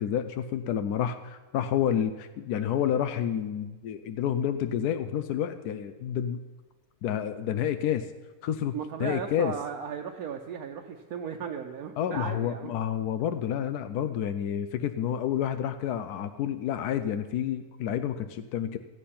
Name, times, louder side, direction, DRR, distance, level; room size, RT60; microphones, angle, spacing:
voice 1, 0.0-6.4 7.0-8.1 8.4-9.5 12.0-18.8, left 9 dB, 85° left, 10 dB, 1.1 m, -29 dB
voice 2, 8.7-12.7, right 7 dB, 75° right, 2 dB, 1.2 m, -36 dB
15.0 x 8.5 x 5.8 m, 1.2 s
omnidirectional pair, 1.6 m